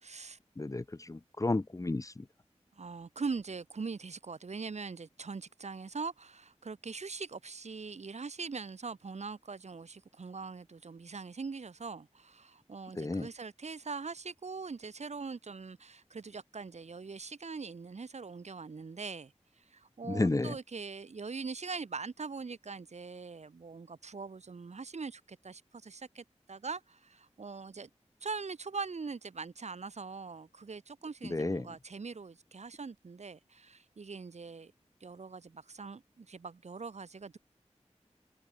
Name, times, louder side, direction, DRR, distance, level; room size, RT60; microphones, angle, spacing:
voice 1, 0.0-0.4 2.8-27.9 28.2-34.7 35.0-37.4, right 4 dB, 70° right, 1.1 m, -42 dB
voice 2, 0.6-2.2 13.0-13.3 20.1-20.6 31.3-31.7, left 2 dB, 30° left, 0.6 m, -32 dB
wide cardioid pair, 50°, 12 cm